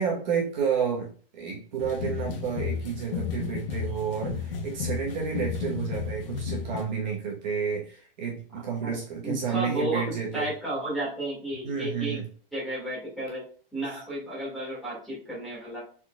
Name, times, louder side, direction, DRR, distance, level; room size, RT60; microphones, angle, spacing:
voice 1, 0.0-10.5 11.6-12.3, right 6 dB, 50° right, -1 dB, 1.1 m, -30 dB
sound 1, 1.8-6.8, left 6 dB, 65° left, 1.1 m, -33 dB
voice 2, 9.2-12.2 12.5-13.4 13.7-15.8, right 1 dB, ahead, -8 dB, 2.0 m, -32 dB
4.3 x 4.3 x 2.3 m, 0.43 s
supercardioid pair, 175°, 29 cm